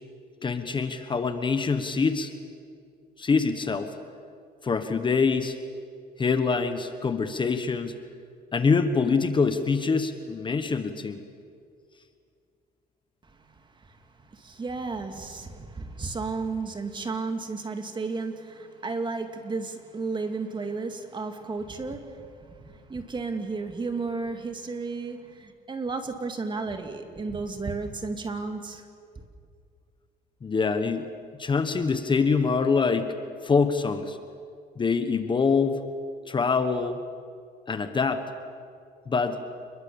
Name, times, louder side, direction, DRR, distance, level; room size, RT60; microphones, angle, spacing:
voice 1, 0.4-2.3 3.2-3.9 4.6-5.6 6.2-8.0 8.5-11.2 30.4-31.1 31.4-33.2 33.4-34.2 34.8-35.8 36.3-37.0 37.7-38.2 39.1-39.4, left 5 dB, 30° left, 8 dB, 1.4 m, -25 dB
voice 2, 14.3-28.8, right 4 dB, 25° right, 6 dB, 2.5 m, -33 dB
28.5 x 21.5 x 7.2 m, 2.3 s
cardioid pair, 110°, 17 cm